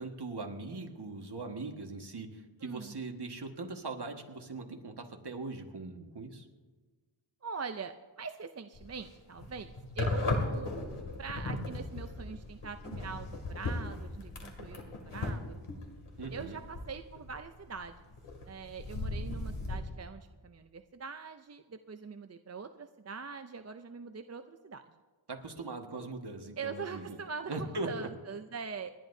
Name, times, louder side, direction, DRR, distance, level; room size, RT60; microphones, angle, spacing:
voice 1, 0.0-6.5 16.2-16.6 25.3-27.2 27.5-28.1, right 3 dB, 50° right, 3 dB, 1.7 m, -40 dB
voice 2, 2.6-3.0 7.4-10.7 11.2-15.6 16.3-17.9 18.5-24.8 25.6-25.7 26.6-29.0, right 5 dB, 30° right, 8 dB, 0.5 m, -43 dB
sound 1, 8.7-9.1 9.4-17.9 18.1-19.8, left 2 dB, 85° left, 2.6 m, -37 dB
29.5 x 11.0 x 2.7 m, 1.3 s
wide cardioid pair, 110°, 50 cm